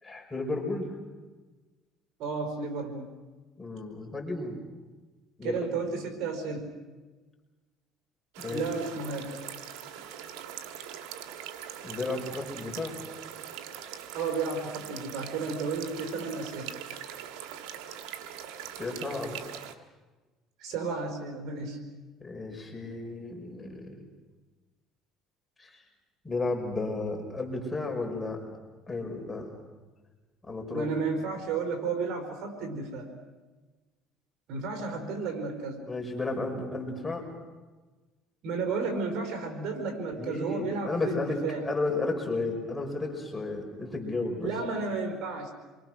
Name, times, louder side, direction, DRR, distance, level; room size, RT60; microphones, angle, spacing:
voice 1, 0.0-0.9 3.6-4.6 5.4-5.6 8.4-8.7 11.8-13.0 18.8-19.4 22.2-24.0 25.6-25.8 26.2-28.5 28.9-29.5 30.4-30.9 35.8-37.2 40.1-44.5, left 3 dB, 15° left, 1 dB, 5.7 m, -33 dB
voice 2, 2.2-3.1 5.4-6.7 8.5-9.3 14.1-16.7 20.6-21.8 30.7-33.1 34.5-35.8 38.4-41.7 44.4-45.5, right 4 dB, 70° right, 5 dB, 4.6 m, -32 dB
sound 1, 8.3-19.7, right 9 dB, 85° right, 1.7 m, -42 dB
27.5 x 23.5 x 6.3 m, 1.3 s
cardioid pair, 105°, 0 cm